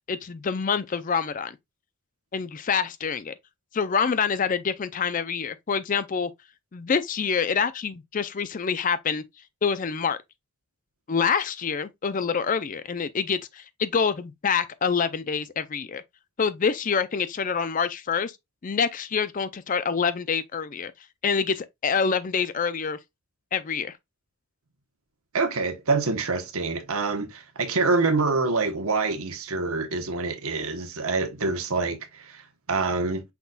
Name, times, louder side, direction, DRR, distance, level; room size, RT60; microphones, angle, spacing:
voice 1, 0.1-1.6 2.3-3.3 3.7-6.3 6.7-9.2 9.6-10.2 11.1-16.0 16.4-18.3 18.6-20.9 21.2-23.0 23.5-23.9, left 6 dB, 35° left, 0.4 m, -26 dB
voice 2, 25.3-33.2, right 3 dB, 75° right, 1.0 m, -26 dB
5.9 x 4.0 x 2.2 m
head